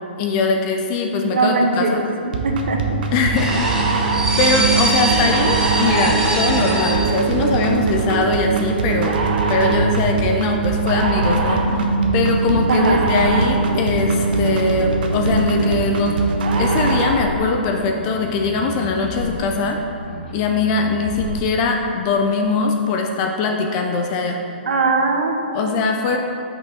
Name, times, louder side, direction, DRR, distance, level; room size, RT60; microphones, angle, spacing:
voice 1, 0.2-2.1 3.1-4.1 4.4-9.2 9.5-16.2 16.6-19.8 20.3-24.4 25.5-26.2, left 4 dB, 30° left, 3 dB, 0.4 m, -21 dB
voice 2, 1.3-2.8 12.7-13.0 24.7-25.4, right 3 dB, 85° right, 3 dB, 0.8 m, -20 dB
sound 1, 2.3-17.3, right 4 dB, 55° right, 0.7 m, -21 dB
sound 2, 2.4-21.4, right 1 dB, 60° left, 1.4 m, -31 dB
sound 3, 3.4-7.7 8.0-8.2, right 1 dB, 10° right, 0.7 m, -23 dB
5.8 x 5.4 x 4.2 m, 2.8 s
hypercardioid pair, 155°, 6 cm